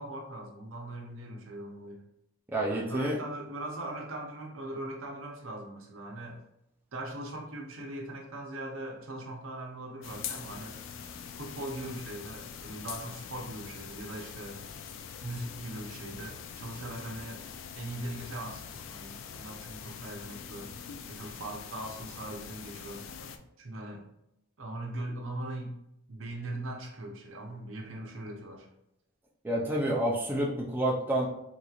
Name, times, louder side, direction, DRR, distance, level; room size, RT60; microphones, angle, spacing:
voice 1, 0.0-2.0 2.7-6.4 6.9-10.8 11.4-14.6 15.2-17.5 17.8-20.7 21.1-24.0 24.6-25.8 26.1-28.7, right 1 dB, 75° right, 1 dB, 0.7 m, -40 dB
voice 2, 2.5-3.2 29.4-31.3, right 1 dB, 10° right, -3 dB, 0.4 m, -29 dB
sound 1, 10.0-23.4, left 7 dB, 65° left, 0.3 m, -44 dB
3.7 x 3.0 x 2.4 m, 0.81 s
head